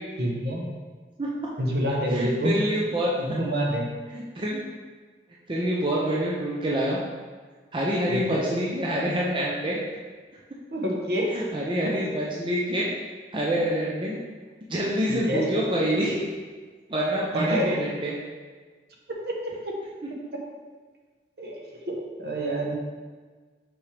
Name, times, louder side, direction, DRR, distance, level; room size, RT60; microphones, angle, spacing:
voice 1, 0.2-0.8 1.6-2.6 3.2-3.9 8.1-8.5 10.7-11.3 11.8-12.1 15.1-15.5 17.3-17.9 19.1-19.7 21.4-22.7, equal, 60° right, -1 dB, 0.9 m, -28 dB
voice 2, 2.1-3.1 4.1-4.6 5.5-7.0 7.7-9.8 11.3-12.9 13.3-14.2 14.7-16.2 16.9-18.1, equal, 25° right, -4 dB, 0.6 m, -26 dB
5.7 x 5.3 x 3.3 m, 1.5 s
head